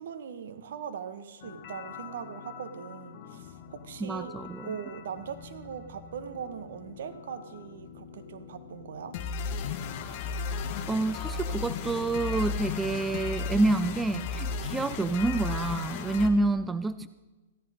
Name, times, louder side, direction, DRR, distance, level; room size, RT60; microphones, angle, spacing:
voice 1, 0.0-4.3 4.6-9.2, right 7 dB, 60° right, 8 dB, 1.5 m, -40 dB
sound 1, 1.4-16.3, left 5 dB, 40° left, 1.5 m, -37 dB
voice 2, 4.0-4.7 10.9-17.1, right 2 dB, 10° right, 13 dB, 0.4 m, -28 dB
15.5 x 14.5 x 3.7 m, 1.2 s
hypercardioid pair, 115°, 0 cm